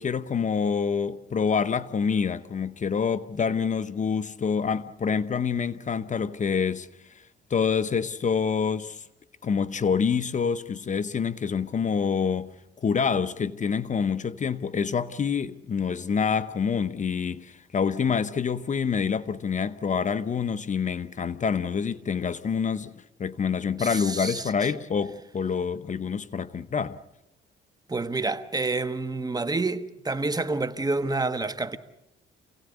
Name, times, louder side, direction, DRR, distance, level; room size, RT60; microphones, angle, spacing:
voice 1, 0.0-6.9 7.5-9.0 9.4-12.5 12.8-27.0, left 6 dB, 40° left, 0.9 m, -27 dB
voice 2, 23.8-24.4 27.9-31.8, right 3 dB, 20° right, 1.2 m, -28 dB
28.0 x 17.0 x 8.1 m
cardioid pair, 90°, 20 cm